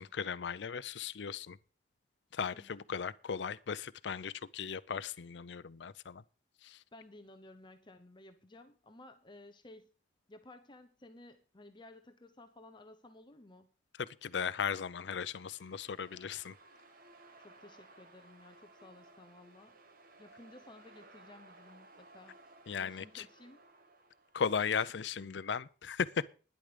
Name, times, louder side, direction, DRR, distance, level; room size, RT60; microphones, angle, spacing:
voice 1, 0.0-1.6 2.3-6.2 6.6-6.8 14.0-16.5 22.7-23.2 24.3-26.3, left 6 dB, 90° left, 0.5 m, -37 dB
voice 2, 2.5-2.8 6.9-9.9 10.3-13.7 17.4-19.8 20.2-22.4 22.8-23.6 24.4-25.4, left 2 dB, 25° left, 0.9 m, -56 dB
sound 1, 14.7-24.6, right 2 dB, 55° right, 1.7 m, -59 dB
12.0 x 10.5 x 5.1 m
head